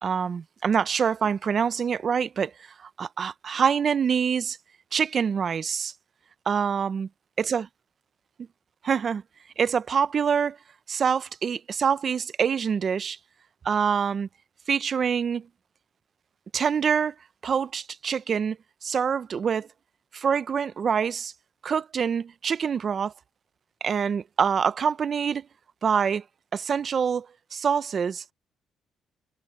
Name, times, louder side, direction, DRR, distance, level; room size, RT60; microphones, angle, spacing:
voice 1, 0.0-2.5 2.8-4.6 4.9-5.9 6.5-7.1 7.4-7.6 8.8-9.2 9.6-10.6 10.9-13.2 13.6-14.3 14.7-15.5 16.5-17.1 17.4-19.7 20.1-21.3 21.6-23.1 23.8-25.5 25.8-26.2 26.5-28.3, right 7 dB, 50° right, 0.7 m, -25 dB
cardioid pair, 90°, 0 cm